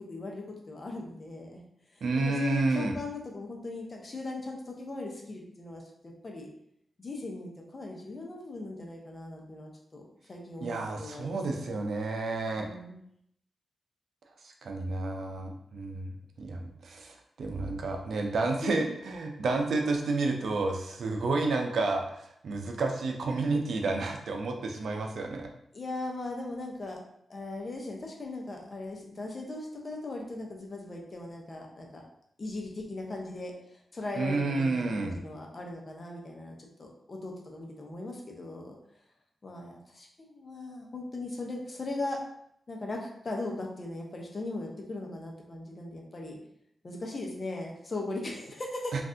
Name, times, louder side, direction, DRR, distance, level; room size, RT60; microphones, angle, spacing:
voice 1, 0.0-1.6 1.9-6.5 7.0-10.0 10.3-11.8 12.6-13.0 18.6-18.7 25.7-27.0 27.3-32.0 32.4-38.8 39.4-42.2 42.7-46.4 46.8-48.9, left 2 dB, 40° left, 0 dB, 0.7 m, -39 dB
voice 2, 2.0-3.0 10.6-12.7 14.4-16.1 16.4-25.5 34.2-35.2, right 3 dB, 75° right, 3 dB, 0.5 m, -30 dB
3.2 x 2.5 x 2.6 m, 0.72 s
cardioid pair, 80°, 0 cm